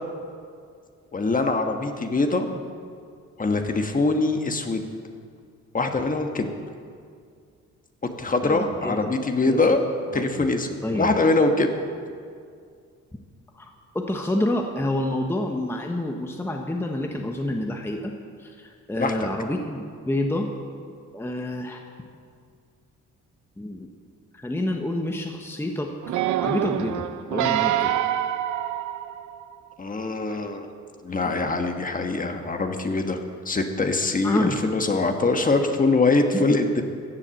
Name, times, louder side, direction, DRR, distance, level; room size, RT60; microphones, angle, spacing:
voice 1, 1.1-2.5 3.4-4.8 5.7-6.5 8.2-9.8 10.1-11.7 19.0-19.1 29.8-30.7 31.0-33.2 33.4-36.8, left 3 dB, 25° left, 5 dB, 1.3 m, -23 dB
voice 2, 8.4-9.1 9.5-9.8 10.1-10.5 10.8-11.1 13.5-18.1 18.4-20.5 21.1-21.8 23.6-23.9 24.3-27.0 27.3-27.9 34.2-34.6 36.3-36.4, left 1 dB, 10° left, 2 dB, 1.0 m, -28 dB
sound 1, 26.0-29.5 30.2-30.3, right 12 dB, 75° right, 0.6 m, -26 dB
15.0 x 7.4 x 7.8 m, 2.2 s
cardioid pair, 90°, 30 cm